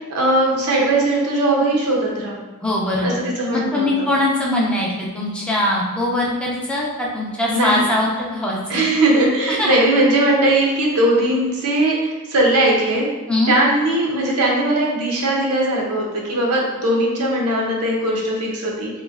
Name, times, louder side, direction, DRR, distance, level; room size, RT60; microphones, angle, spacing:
voice 1, 0.1-2.4 3.0-4.1 7.5-7.8 8.7-13.1 13.5-18.9, right 1 dB, 85° right, -2 dB, 0.7 m, -19 dB
voice 2, 2.6-3.2 3.5-8.8 9.5-9.7 13.3-13.5, left 1 dB, 5° left, -4 dB, 0.4 m, -21 dB
3.0 x 2.5 x 2.4 m, 1.2 s
head